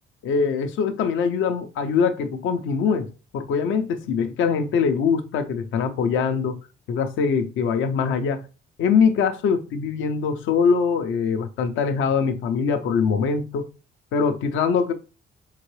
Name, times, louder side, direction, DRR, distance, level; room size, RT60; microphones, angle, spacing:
voice 1, 0.2-3.1 3.3-6.6 6.9-8.4 8.8-13.7 14.1-14.9, left 6 dB, 80° left, 0.6 m, -23 dB
4.5 x 3.7 x 3.1 m
cardioid pair, 90°, 20 cm